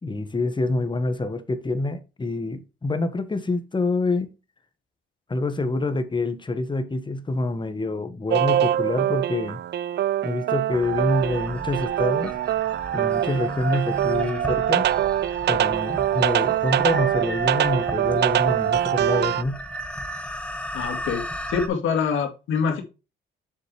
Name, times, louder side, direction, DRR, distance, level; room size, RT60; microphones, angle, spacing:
voice 1, 0.0-4.3 5.3-9.6 10.2-12.3 12.9-14.9 15.5-19.6, left 2 dB, 25° left, 1.5 m, -26 dB
sound 1, 8.3-19.4, right 11 dB, 60° right, 0.5 m, -23 dB
sound 2, 10.7-21.7, equal, 5° left, 1.4 m, -36 dB
voice 2, 20.7-22.8, left 6 dB, 80° left, 2.4 m, -25 dB
7.3 x 6.2 x 3.2 m
cardioid pair, 90°, 20 cm